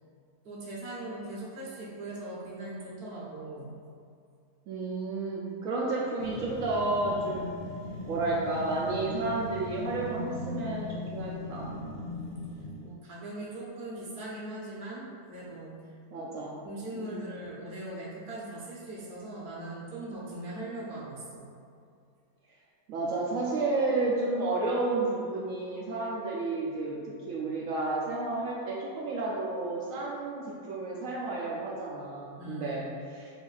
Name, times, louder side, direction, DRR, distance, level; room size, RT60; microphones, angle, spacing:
voice 1, 0.4-3.8 12.1-12.4 12.8-15.9 16.6-21.5 32.3-32.8, right 2 dB, 50° right, -7 dB, 0.9 m, -40 dB
voice 2, 4.7-7.5 8.1-11.7 16.1-16.5 16.9-17.2 22.9-33.3, right 2 dB, 70° right, -5 dB, 0.9 m, -31 dB
sound 1, 6.2-13.0, left 2 dB, 60° left, 1.1 m, -39 dB
6.2 x 2.5 x 2.4 m, 2.3 s
omnidirectional pair, 1.5 m